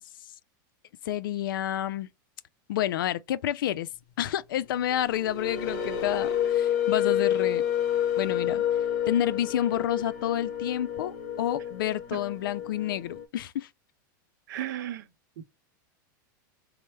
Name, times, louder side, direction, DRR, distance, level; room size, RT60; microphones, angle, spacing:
voice 1, 1.0-2.1 2.7-3.9 4.2-7.6 8.2-8.6 9.1-13.7, left 11 dB, 85° left, 0.4 m, -29 dB
sound 1, 4.8-13.2, left 10 dB, 55° left, 0.9 m, -29 dB
voice 2, 14.5-15.1 15.4-15.5, right 12 dB, 70° right, 0.7 m, -34 dB
4.3 x 2.0 x 3.2 m
supercardioid pair, 145°, 11 cm